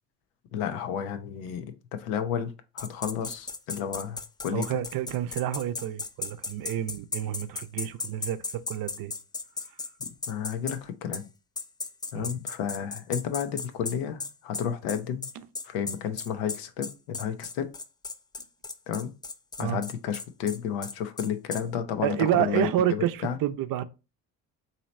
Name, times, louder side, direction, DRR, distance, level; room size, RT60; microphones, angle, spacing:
voice 1, 0.5-4.8 10.0-11.2 12.1-15.2 15.6-17.7 18.9-19.1 19.6-22.7 23.2-23.4, left 8 dB, 90° left, 0.7 m, -32 dB
sound 1, 2.8-10.8 11.1-11.2 11.6-21.6, left 3 dB, 10° left, 0.3 m, -36 dB
voice 2, 4.5-9.1 12.1-12.3 19.6-19.8 22.0-23.8, right 12 dB, 60° right, 0.6 m, -29 dB
3.1 x 2.8 x 4.1 m
supercardioid pair, 75°, 40 cm